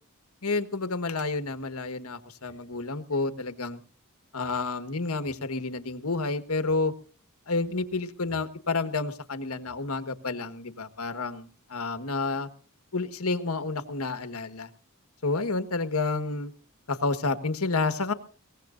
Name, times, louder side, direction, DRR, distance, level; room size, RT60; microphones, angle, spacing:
voice 1, 0.4-3.8 4.3-6.9 7.5-12.5 12.9-14.7 15.2-16.5 16.9-18.1, left 3 dB, 80° left, 10 dB, 1.5 m, -30 dB
23.0 x 18.0 x 2.6 m, 0.41 s
head